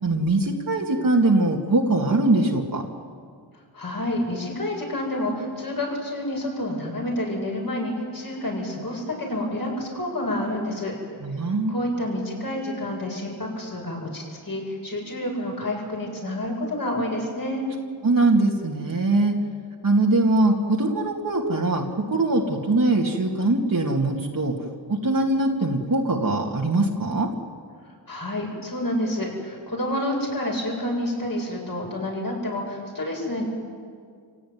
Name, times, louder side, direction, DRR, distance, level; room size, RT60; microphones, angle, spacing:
voice 1, 0.0-2.8 11.2-11.8 18.0-19.3 19.8-24.6 24.9-27.3, right 2 dB, 50° right, -1 dB, 2.3 m, -22 dB
voice 2, 3.7-10.9 11.7-17.7 28.1-33.5, left 1 dB, 50° left, -1 dB, 7.9 m, -29 dB
27.5 x 17.0 x 9.5 m, 2.1 s
wide cardioid pair, 75°, 43 cm